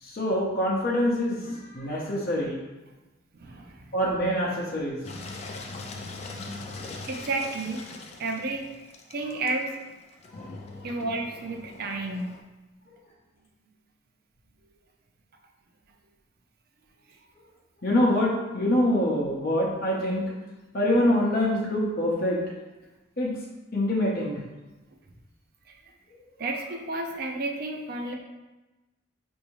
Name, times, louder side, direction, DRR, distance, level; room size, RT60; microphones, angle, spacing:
voice 1, 0.0-2.6 3.9-5.0 10.4-10.5 17.8-20.3 20.7-22.4 23.2-23.3 23.7-24.4, left 1 dB, 50° left, -5 dB, 0.7 m, -25 dB
voice 2, 3.3-4.0 7.0-7.8 8.2-8.7 9.1-9.8 10.8-12.4 25.7-25.8 26.4-28.1, right 2 dB, 50° right, 2 dB, 0.5 m, -31 dB
Engine, 5.0-12.4, left 3 dB, 35° left, 0.3 m, -41 dB
4.5 x 2.7 x 3.0 m, 1.1 s
head